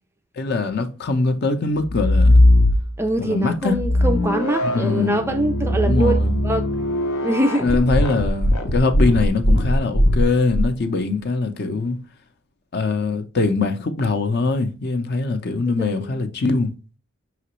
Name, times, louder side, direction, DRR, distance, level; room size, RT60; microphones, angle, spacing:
voice 1, 0.4-2.4 3.2-3.8 4.6-5.3 5.8-6.4 7.6-12.0 12.7-16.7, left 3 dB, 50° left, 0.6 m, -22 dB
sound 1, 1.8-3.2 3.7-10.7, left 1 dB, 80° left, 0.7 m, -19 dB
voice 2, 3.0-6.2 6.4-6.7 7.2-7.7 15.8-16.2, right 1 dB, 10° right, 0.3 m, -23 dB
5.7 x 2.9 x 3.0 m
head